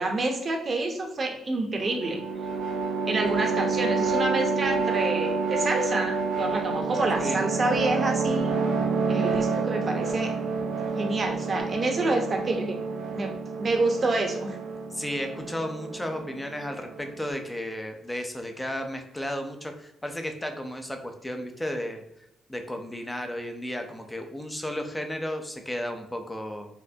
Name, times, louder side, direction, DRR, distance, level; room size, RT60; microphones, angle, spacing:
voice 1, 0.0-2.2 3.0-8.6 9.1-10.3 11.0-12.8 13.1-13.3 13.6-14.6, right 2 dB, 40° right, 2 dB, 0.8 m, -28 dB
sound 1, 1.8-17.3, right 4 dB, 70° right, 0.5 m, -28 dB
voice 2, 14.9-22.0 22.5-26.7, left 1 dB, 10° left, 4 dB, 0.5 m, -33 dB
4.2 x 2.0 x 2.7 m, 0.81 s
cardioid pair, 90°, 0 cm